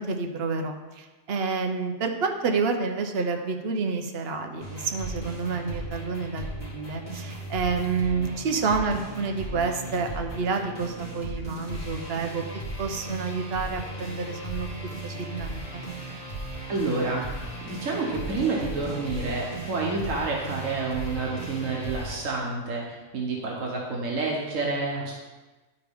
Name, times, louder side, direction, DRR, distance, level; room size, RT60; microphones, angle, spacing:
voice 1, 0.0-12.4 12.8-14.7 15.0-15.8, right 4 dB, 55° right, 4 dB, 0.9 m, -29 dB
sound 1, 4.6-22.2, right 1 dB, 35° left, 2.3 m, -36 dB
voice 2, 16.7-17.2 17.6-25.1, right 3 dB, 85° right, -2 dB, 1.4 m, -29 dB
11.0 x 4.6 x 3.5 m, 1.2 s
omnidirectional pair, 1.3 m